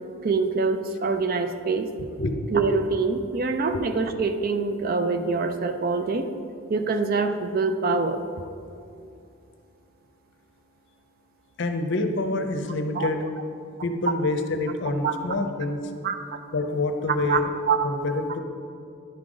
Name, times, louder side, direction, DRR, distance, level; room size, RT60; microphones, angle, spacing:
voice 1, 0.2-1.9 2.5-6.3 6.7-8.2 12.9-13.1 15.0-15.1 16.0-16.2 17.3-17.4 17.7-17.9, right 4 dB, 45° right, 8 dB, 0.4 m, -24 dB
voice 2, 2.0-2.4 3.7-3.8 11.6-13.2 13.8-15.8 16.5-17.5 17.8-18.4, left 2 dB, 55° left, 6 dB, 0.6 m, -27 dB
10.0 x 4.9 x 3.8 m, 2.5 s
head